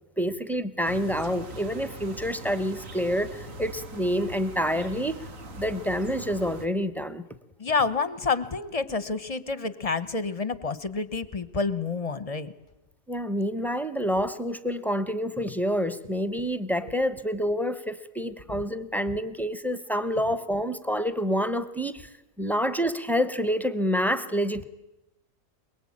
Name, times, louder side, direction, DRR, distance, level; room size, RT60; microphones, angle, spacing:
voice 1, 0.2-5.3 5.6-7.3 13.1-22.1 22.4-24.6, equal, ahead, 10 dB, 1.0 m, -28 dB
sound 1, 0.8-6.7, right 2 dB, 75° right, 2.3 m, -41 dB
voice 2, 7.6-12.5 16.8-16.9 18.5-18.6, left 4 dB, 30° left, 15 dB, 1.0 m, -29 dB
23.0 x 23.0 x 8.7 m, 0.93 s
omnidirectional pair, 1.4 m